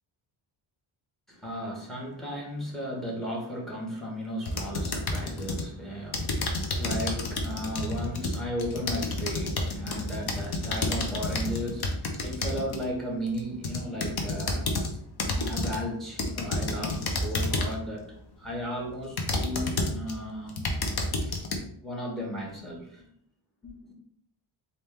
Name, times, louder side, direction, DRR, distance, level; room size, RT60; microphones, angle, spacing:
voice 1, 1.3-14.8 15.3-20.7 21.2-21.4 21.8-23.0 23.6-23.9, equal, ahead, -2 dB, 1.5 m, -35 dB
sound 1, 4.5-5.7 6.1-12.9 13.4-14.9 15.2-15.8 16.2-17.8 18.4-18.5 19.2-20.1 20.5-21.6, left 2 dB, 50° left, 0.9 m, -30 dB
4.2 x 2.7 x 3.5 m, 0.65 s
cardioid pair, 110°, 50 cm